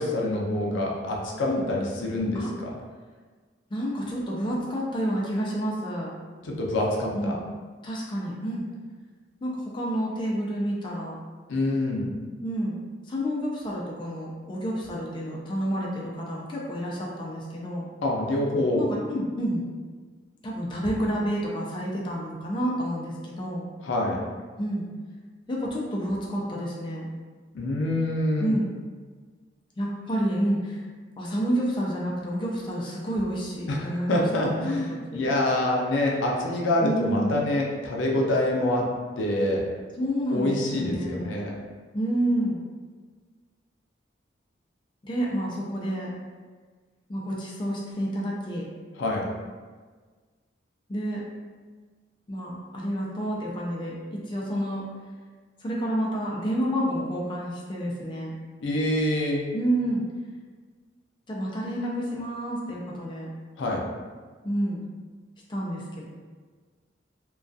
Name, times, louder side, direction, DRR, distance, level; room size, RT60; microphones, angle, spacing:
voice 1, 0.0-2.8 6.4-7.4 11.5-12.1 18.0-18.8 23.8-24.2 27.5-28.5 33.7-38.9 39.2-39.6 40.3-41.6 49.0-49.3 58.6-59.5 63.6-63.8, left 1 dB, 90° left, -1 dB, 0.5 m, -26 dB
voice 2, 3.7-6.1 7.2-7.4 7.8-8.7 9.4-11.2 12.4-12.8 13.0-17.8 18.7-19.6 20.4-23.7 24.6-24.9 25.5-27.1 28.4-28.7 29.8-30.8 31.2-35.3 36.8-37.3 40.0-41.4 41.9-42.6 45.0-46.1 47.1-48.7 50.9-51.2 52.3-54.9 55.6-58.3 59.5-60.0 61.3-63.3 64.4-64.8 65.5-66.1, equal, 25° left, -4 dB, 0.3 m, -29 dB
2.2 x 2.2 x 2.5 m, 1.5 s
head